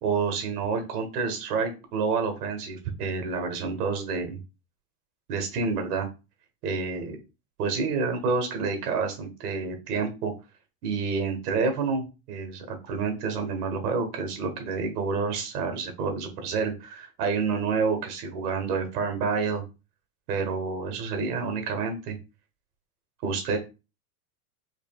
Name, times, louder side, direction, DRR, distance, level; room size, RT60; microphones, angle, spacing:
voice 1, 0.0-4.4 5.3-6.1 6.6-7.2 7.6-10.3 10.8-19.6 20.3-22.2 23.2-23.6, right 5 dB, 70° right, 6 dB, 1.5 m, -28 dB
4.9 x 2.9 x 2.3 m, 0.29 s
supercardioid pair, 145°, 46 cm